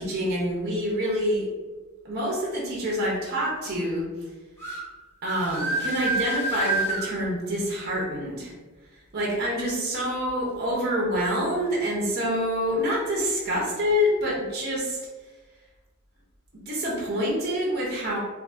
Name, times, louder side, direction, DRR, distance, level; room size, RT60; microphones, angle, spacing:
voice 1, 0.0-1.5 2.0-4.1 5.2-8.5 9.1-15.0 16.7-18.2, equal, 45° right, -3 dB, 0.6 m, -26 dB
sound 1, 4.6-4.8 5.3-7.0, right 2 dB, 10° left, 0.5 m, -28 dB
2.6 x 2.5 x 2.4 m, 1.3 s
head